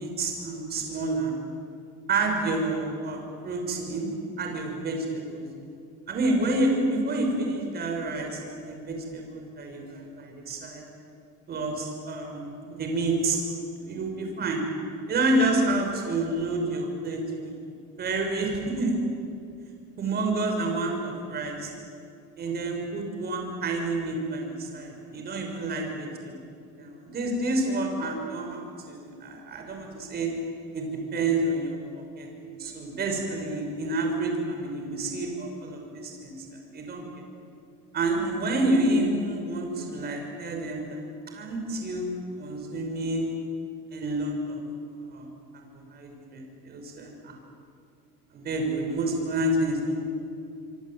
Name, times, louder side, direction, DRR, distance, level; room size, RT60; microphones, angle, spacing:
voice 1, 0.0-1.3 2.1-4.1 4.4-5.4 6.1-10.8 11.5-13.4 13.8-14.6 15.1-17.5 18.0-19.0 20.0-21.7 22.4-26.4 26.8-28.6 28.9-30.3 30.7-32.3 32.6-36.5 36.7-37.0 37.9-41.0 41.3-42.1 42.4-43.3 43.9-44.6 45.1-45.3 45.5-47.3 48.3-49.9, right 2 dB, 35° right, 2 dB, 6.1 m, -29 dB
26.0 x 24.5 x 9.1 m, 2.4 s
cardioid pair, 150°, 29 cm